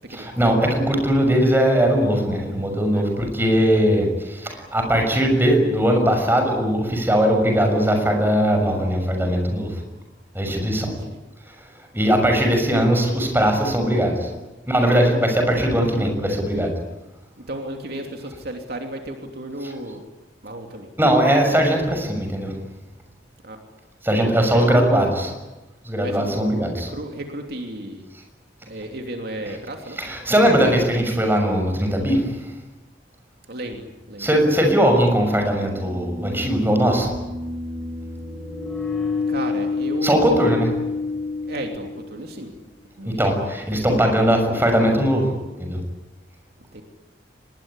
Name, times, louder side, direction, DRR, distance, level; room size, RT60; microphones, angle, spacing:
voice 1, 0.1-9.8 10.3-10.9 11.9-14.3 14.7-16.7 19.6-19.7 21.0-22.5 24.0-25.3 25.8-26.9 29.9-32.3 34.2-37.1 40.0-40.7 43.0-45.3 45.6-45.8, equal, 10° right, 4 dB, 6.5 m, -19 dB
voice 2, 2.9-3.3 10.8-11.2 17.5-20.0 20.4-20.9 23.4-23.6 24.5-24.7 26.0-28.1 28.7-30.0 33.5-34.3 39.3-40.3 41.5-42.5 43.0-43.2 46.7-46.8, right 1 dB, 60° right, 3 dB, 3.0 m, -34 dB
sound 1, 33.9-34.0 35.5-42.3, left 4 dB, 5° left, 7.8 m, -28 dB
24.5 x 21.5 x 9.9 m, 1.0 s
head